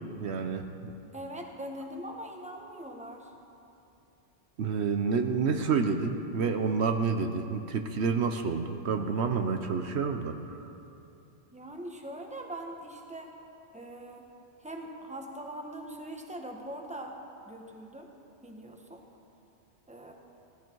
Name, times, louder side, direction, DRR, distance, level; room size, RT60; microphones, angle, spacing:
voice 1, 0.2-0.9 4.6-10.6, right 5 dB, 70° right, 6 dB, 1.1 m, -29 dB
voice 2, 1.1-3.3 11.5-13.3 13.7-14.2 14.6-17.2 17.5-18.1 18.4-19.0 19.9-20.1, right 1 dB, 5° right, 1 dB, 1.3 m, -42 dB
16.5 x 15.5 x 4.6 m, 2.7 s
omnidirectional pair, 1.2 m